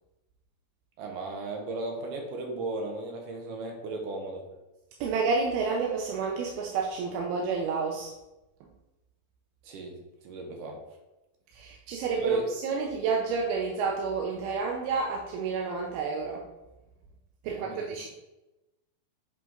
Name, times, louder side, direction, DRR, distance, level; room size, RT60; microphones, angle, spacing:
voice 1, 1.0-4.4 9.6-10.0 10.2-10.8 12.2-12.4 17.4-17.9, right 2 dB, 70° right, 2 dB, 2.2 m, -36 dB
voice 2, 5.0-8.1 11.5-16.5 17.4-18.1, right 4 dB, 90° right, 0 dB, 2.6 m, -30 dB
7.8 x 3.8 x 3.8 m, 0.99 s
omnidirectional pair, 4.3 m